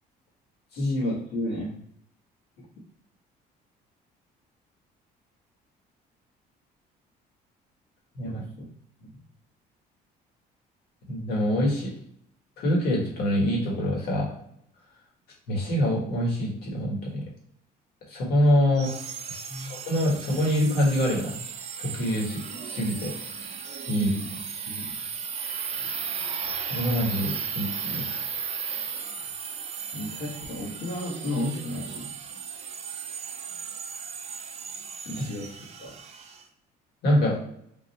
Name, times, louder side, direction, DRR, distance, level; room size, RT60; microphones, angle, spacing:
voice 1, 0.8-1.8 2.6-2.7 8.2-8.4 9.0-9.1 19.5-19.7 23.9-24.3 24.7-24.9 29.9-32.1 35.0-35.9, left 1 dB, 90° left, -10 dB, 1.7 m, -32 dB
voice 2, 11.1-11.9 12.6-14.3 15.5-17.2 18.1-18.9 19.3-21.3 21.8-23.1 23.9-24.1 26.7-28.1 35.2-35.3 37.0-37.4, equal, 70° left, -2 dB, 1.7 m, -25 dB
sound 1, 18.8-36.4, right 6 dB, 40° right, 0.5 m, -36 dB
3.9 x 2.5 x 4.3 m, 0.71 s
cardioid pair, 110°, 17 cm